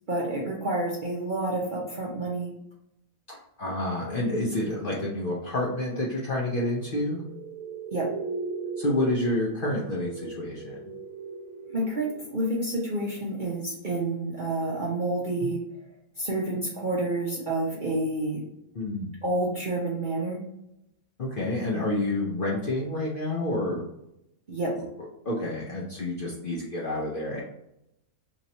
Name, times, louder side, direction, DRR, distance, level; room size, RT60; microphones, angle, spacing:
voice 1, 0.1-2.5 7.9-8.1 11.7-15.6 16.2-18.4 19.2-20.4 24.5-24.7, right 2 dB, 50° right, -4 dB, 0.6 m, -29 dB
voice 2, 3.3-7.2 8.8-10.8 18.7-19.1 21.2-23.8 25.2-27.4, left 1 dB, 50° left, -4 dB, 0.7 m, -29 dB
sound 1, 4.0-12.7, right 4 dB, 75° right, 1.0 m, -40 dB
3.0 x 2.7 x 4.0 m, 0.82 s
omnidirectional pair, 1.6 m